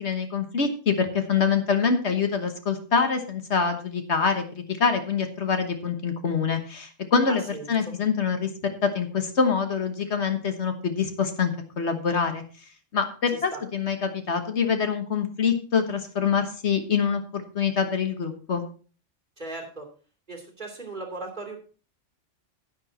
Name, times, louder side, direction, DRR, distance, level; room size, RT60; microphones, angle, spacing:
voice 1, 0.0-7.4 7.7-8.5 8.8-12.4 12.9-18.6, left 6 dB, 65° left, 7 dB, 1.5 m, -25 dB
voice 2, 7.3-7.7 13.3-13.6 19.4-19.9 20.3-21.6, right 3 dB, 40° right, 1 dB, 3.1 m, -37 dB
10.0 x 9.8 x 4.1 m, 0.38 s
omnidirectional pair, 1.3 m